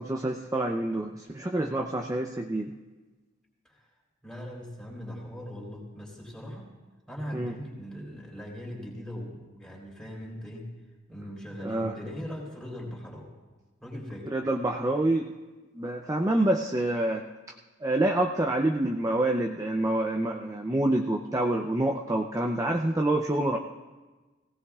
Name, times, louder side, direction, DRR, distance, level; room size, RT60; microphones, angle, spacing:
voice 1, 0.0-2.7 7.3-7.6 11.6-11.9 14.3-15.3 15.7-17.2 17.8-23.6, right 1 dB, 15° right, 2 dB, 0.5 m, -27 dB
voice 2, 4.2-6.7 7.1-10.7 11.1-13.3 13.8-14.4, equal, 5° left, -3 dB, 3.5 m, -40 dB
19.0 x 17.0 x 2.4 m, 1.2 s
head